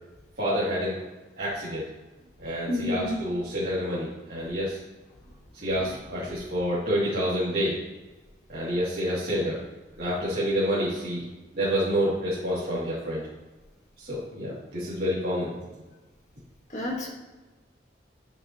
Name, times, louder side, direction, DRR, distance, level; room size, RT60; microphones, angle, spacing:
voice 1, 0.4-1.0 1.4-1.9 2.4-4.8 5.6-7.8 8.5-9.6 10.0-11.2 11.5-13.2 14.0-15.5, equal, 55° right, -12 dB, 2.9 m, -28 dB
voice 2, 2.7-3.2 5.8-5.9 16.7-17.1, left 1 dB, 40° left, -2 dB, 1.7 m, -30 dB
9.9 x 6.7 x 3.1 m, 1.2 s
head